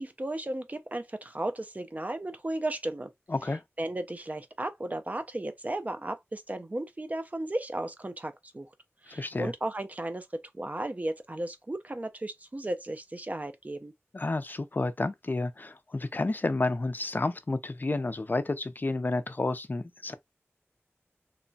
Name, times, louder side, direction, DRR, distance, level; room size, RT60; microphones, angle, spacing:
voice 1, 0.0-3.1 3.8-8.7 9.0-13.9, right 1 dB, 35° right, 0.5 m, -35 dB
voice 2, 3.3-3.6 9.1-9.5 14.1-20.1, left 2 dB, 40° left, 0.4 m, -30 dB
2.9 x 2.2 x 2.6 m
wide cardioid pair, 65°, 5 cm